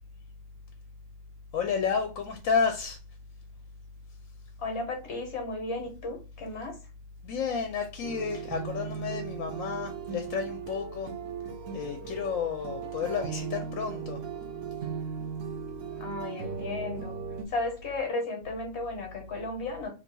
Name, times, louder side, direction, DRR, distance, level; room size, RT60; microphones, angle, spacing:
voice 1, 1.5-3.0 7.2-11.1 11.7-14.2, left 6 dB, 85° left, 1.0 m, -31 dB
voice 2, 4.6-6.8 15.9-17.2 17.5-19.9, left 2 dB, 60° left, 1.1 m, -34 dB
sound 1, 8.0-17.5, right 6 dB, 75° right, 1.0 m, -37 dB
2.7 x 2.3 x 3.9 m
omnidirectional pair, 1.4 m